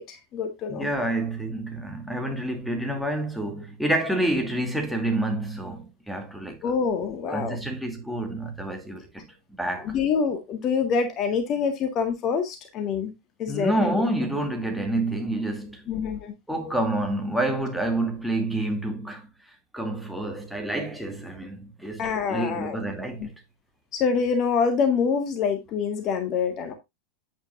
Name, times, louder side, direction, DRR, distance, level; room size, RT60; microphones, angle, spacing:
voice 1, 0.0-0.9 6.6-7.6 9.8-13.1 13.4-14.1 15.9-16.3 22.0-22.8 23.2-23.3 23.9-26.7, left 6 dB, 35° left, 1.8 m, -26 dB
voice 2, 0.7-6.7 7.3-9.9 13.5-15.9 16.5-19.3 19.7-23.3, right 1 dB, ahead, 2.7 m, -28 dB
9.0 x 9.0 x 2.6 m
figure-of-eight pair, 90°, 0 cm